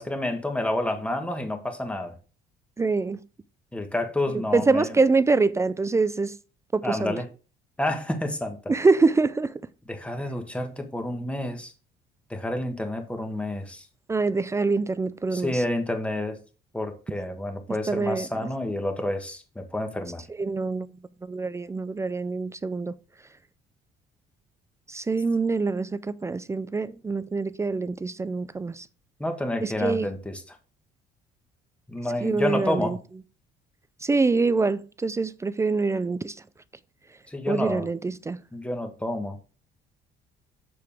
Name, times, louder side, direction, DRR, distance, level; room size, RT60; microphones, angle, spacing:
voice 1, 0.0-2.1 3.7-4.9 6.8-7.3 7.8-8.6 9.9-11.7 12.3-13.9 15.3-16.4 16.7-20.2 29.2-30.6 31.9-33.0 37.3-37.9 38.5-39.4, left 1 dB, 5° left, 1.5 m, -29 dB
voice 2, 2.8-3.2 4.5-6.3 6.7-7.1 8.7-9.5 14.1-15.6 17.9-18.3 20.4-20.9 21.3-22.9 24.9-28.9 29.6-30.1 32.2-33.0 34.0-36.4 37.5-38.4, right 3 dB, 15° right, 0.4 m, -25 dB
6.9 x 6.6 x 3.4 m
cardioid pair, 110°, 17 cm